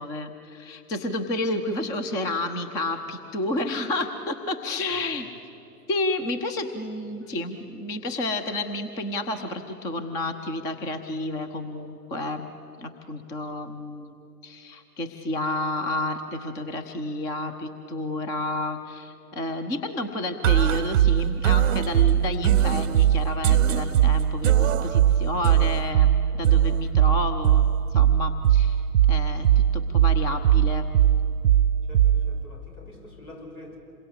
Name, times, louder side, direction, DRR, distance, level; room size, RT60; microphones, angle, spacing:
voice 1, 0.0-5.3 5.9-12.5 12.8-14.1 14.4-28.8 29.1-30.9, left 2 dB, 10° left, 8 dB, 0.5 m, -30 dB
sound 1, 20.4-32.4, right 10 dB, 55° right, 0.7 m, -20 dB
voice 2, 31.9-33.8, left 1 dB, 65° left, 2 dB, 6.2 m, -46 dB
27.0 x 22.0 x 8.1 m, 2.9 s
figure-of-eight pair, 110°, 46 cm